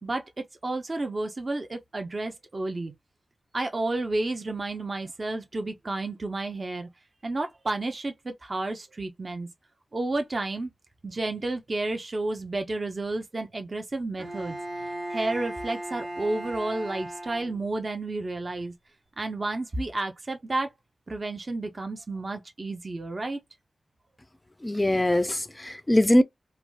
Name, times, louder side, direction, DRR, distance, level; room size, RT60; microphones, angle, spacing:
voice 1, 0.6-2.9 3.5-6.9 7.2-9.5 9.9-10.7 11.0-14.6 14.8-18.7 19.2-20.7 21.1-23.4, right 2 dB, 40° right, 0.5 m, -31 dB
Bowed string instrument, 14.2-17.9, right 1 dB, 65° right, 1.1 m, -37 dB
voice 2, 24.6-26.2, left 1 dB, 15° left, 0.3 m, -22 dB
3.3 x 2.2 x 2.4 m
wide cardioid pair, 90°, 0 cm